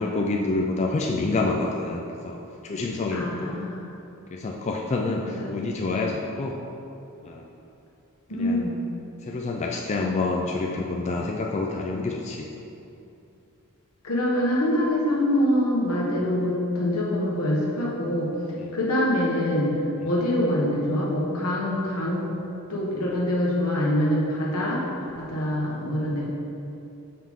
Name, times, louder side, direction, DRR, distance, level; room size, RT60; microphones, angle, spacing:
voice 1, 0.0-2.4 2.6-3.6 4.3-6.6 7.2-7.5 8.3-8.7 9.2-12.5 18.6-18.8 25.3-25.4, left 3 dB, 30° left, 0 dB, 0.3 m, -28 dB
voice 2, 3.1-3.8 5.3-5.5 8.3-8.8 14.0-18.3 18.7-19.7 20.0-22.2 22.7-26.3, left 1 dB, 75° left, -4 dB, 1.3 m, -25 dB
6.2 x 5.7 x 3.6 m, 2.8 s
head